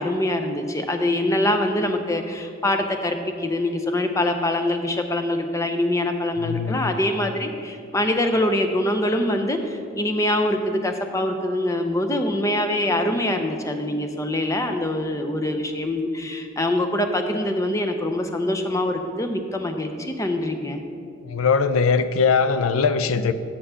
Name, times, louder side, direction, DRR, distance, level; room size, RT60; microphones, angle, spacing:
voice 1, 0.0-20.8, left 1 dB, 15° left, 5 dB, 0.5 m, -24 dB
voice 2, 6.4-6.9 21.2-23.3, left 5 dB, 80° left, 12 dB, 0.4 m, -21 dB
6.7 x 5.7 x 6.9 m, 2.4 s
head